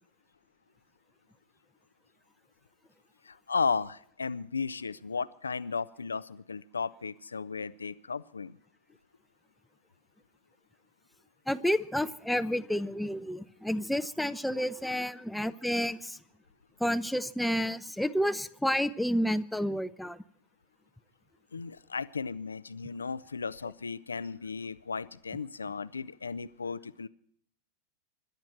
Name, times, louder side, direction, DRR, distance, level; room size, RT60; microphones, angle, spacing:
voice 1, 3.3-8.6 21.5-27.1, left 5 dB, 75° left, 17 dB, 0.6 m, -35 dB
voice 2, 11.5-16.2 16.8-20.2, equal, ahead, 12 dB, 0.8 m, -30 dB
25.5 x 12.0 x 4.5 m, 0.65 s
figure-of-eight pair, 90°, 0 cm